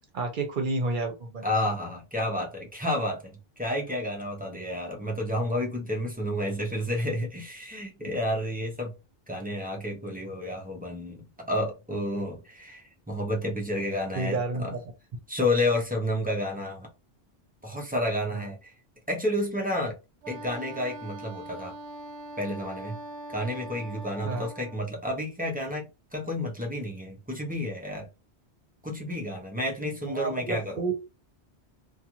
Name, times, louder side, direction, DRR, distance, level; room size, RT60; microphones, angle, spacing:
voice 1, 0.1-1.5 14.2-14.8 18.3-18.5 24.2-24.5 30.1-30.9, right 3 dB, 55° right, 0.8 m, -30 dB
voice 2, 1.4-8.9 9.3-14.7 15.3-16.9 17.6-18.7 19.1-20.0 20.3-21.7 22.4-23.0 23.3-28.1 28.8-30.8, left 1 dB, 15° right, 0.3 m, -30 dB
Wind instrument woodwind instrument, 20.2-24.9, right 1 dB, 90° right, 0.9 m, -42 dB
2.4 x 2.3 x 2.9 m
omnidirectional pair, 1.1 m